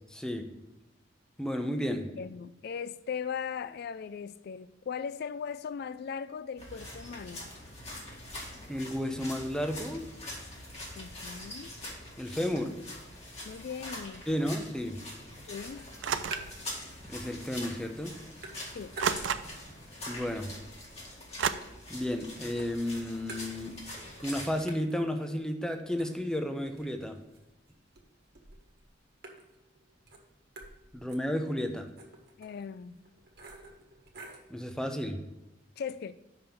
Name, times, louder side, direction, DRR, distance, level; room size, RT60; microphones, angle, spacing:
voice 1, 0.1-0.5 1.4-2.1 8.7-10.0 12.2-12.7 14.3-15.0 17.0-18.1 20.1-20.5 21.9-23.8 24.2-27.2 30.9-31.9 34.5-35.2, left 1 dB, 5° left, 0.7 m, -32 dB
voice 2, 2.1-7.5 10.9-11.7 13.4-14.2 15.5-15.8 18.7-19.0 32.4-33.0 35.8-36.1, left 6 dB, 55° left, 0.3 m, -38 dB
sound 1, 6.6-24.6, left 1 dB, 35° left, 2.0 m, -44 dB
sound 2, 15.8-16.8 17.1-17.8 18.0-19.6 20.0-22.2 22.6-24.0 24.3-24.4 24.7-34.5, right 2 dB, 60° right, 1.4 m, -50 dB
sound 3, 16.0-16.6 17.6-17.7 19.0-19.7 21.4-21.5, right 7 dB, 85° right, 0.5 m, -31 dB
5.9 x 5.4 x 6.9 m
head